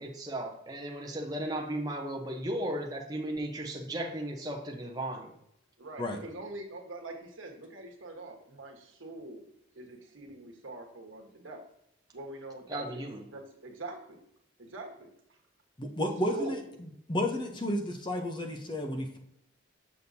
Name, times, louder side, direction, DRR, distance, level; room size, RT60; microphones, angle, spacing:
voice 1, 0.0-5.3 12.7-13.2, right 1 dB, 20° right, 1 dB, 0.8 m, -35 dB
voice 2, 5.8-9.4 9.7-11.6 12.1-13.0 13.3-14.2 14.6-15.4 16.3-16.6, right 2 dB, 80° right, 2 dB, 1.3 m, -43 dB
voice 3, 15.8-16.6 17.1-19.2, left 1 dB, 25° left, 3 dB, 0.7 m, -32 dB
7.0 x 6.2 x 2.7 m, 0.77 s
head